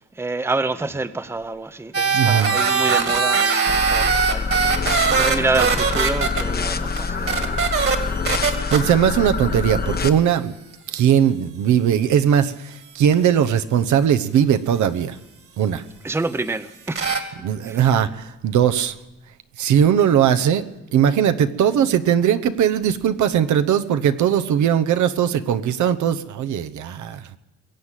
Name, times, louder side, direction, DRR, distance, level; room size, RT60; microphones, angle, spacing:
voice 1, 0.2-4.6 5.1-7.9 16.0-17.1 17.7-17.8, right 3 dB, 10° right, 0.7 m, -27 dB
sound 1, 1.9-6.4 7.0-7.1 7.3-8.0 8.3-8.8 13.1-13.2 16.9-17.2, right 5 dB, 45° right, 2.1 m, -20 dB
voice 2, 2.1-2.6 8.4-10.5 10.9-15.2 15.6-15.8 17.4-18.9 19.6-20.6 20.9-27.4, right 9 dB, 75° right, 0.9 m, -19 dB
sound 2, 3.7-10.1, left 4 dB, 30° left, 0.9 m, -26 dB
22.0 x 8.2 x 7.4 m
cardioid pair, 90°, 30 cm